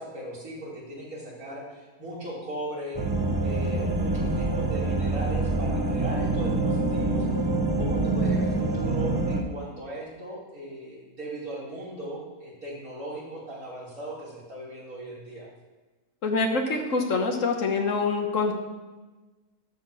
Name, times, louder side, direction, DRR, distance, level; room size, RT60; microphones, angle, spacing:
voice 1, 0.0-3.1 3.4-7.3 7.8-15.5, right 1 dB, 80° right, -6 dB, 3.6 m, -38 dB
sound 1, 2.9-9.4, right 2 dB, 20° right, 1.0 m, -26 dB
voice 2, 16.2-18.5, left 4 dB, 65° left, 4 dB, 1.5 m, -25 dB
12.0 x 4.3 x 7.3 m, 1.2 s
omnidirectional pair, 1.5 m